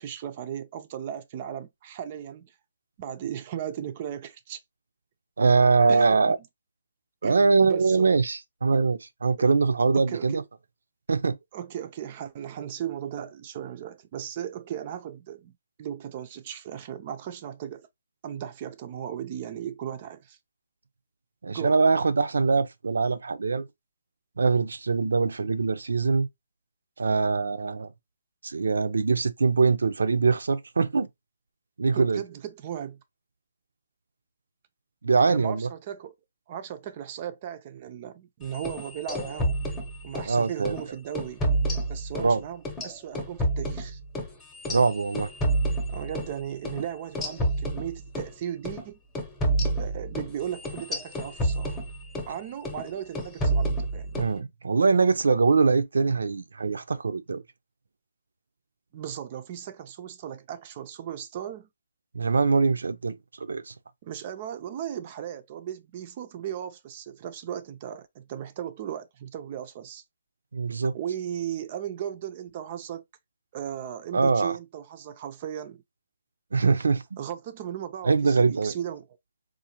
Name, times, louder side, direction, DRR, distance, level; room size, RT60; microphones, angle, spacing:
voice 1, 0.0-2.5 3.0-4.6 5.9-6.3 7.2-8.1 9.4-9.5 9.9-10.4 11.5-17.9 18.2-20.4 21.5-21.8 31.9-33.0 35.3-36.1 36.5-39.6 40.0-41.5 41.9-44.0 45.9-49.0 49.8-51.8 52.3-54.2 58.9-61.7 64.0-70.0 70.9-73.0 73.5-75.8 77.2-79.1, right 9 dB, 30° right, 0.4 m, -36 dB
voice 2, 5.4-6.4 7.2-10.4 11.1-11.4 21.4-23.7 24.4-26.3 27.0-27.9 28.4-31.1 31.8-32.2 35.0-35.7 40.2-40.8 42.2-42.4 44.7-45.3 54.2-57.4 62.1-63.7 70.5-71.0 74.1-74.6 76.5-77.0 78.0-78.8, right 4 dB, 85° right, 0.5 m, -23 dB
sound 1, 38.5-40.3 40.7-40.8 41.2-42.3 42.7-46.3 46.7-46.8 47.2-48.3 48.7-48.8 49.2-52.3 52.7-52.9 53.2-54.3, right 1 dB, 10° left, 0.8 m, -29 dB
3.8 x 2.5 x 2.8 m
hypercardioid pair, 165°, 0 cm